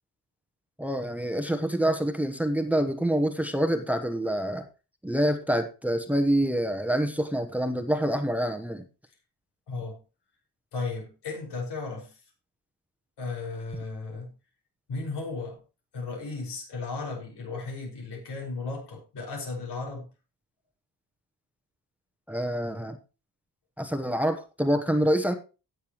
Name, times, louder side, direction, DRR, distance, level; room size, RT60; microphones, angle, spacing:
voice 1, 0.8-4.6 5.0-8.8 22.3-23.0 23.8-25.3, right 1 dB, 5° right, 1.0 m, -26 dB
voice 2, 9.7-10.0 10.7-12.2 13.2-14.3 14.9-15.6 15.9-20.1, left 3 dB, 85° left, 5.7 m, -35 dB
17.5 x 6.8 x 3.0 m
cardioid pair, 130°, 40 cm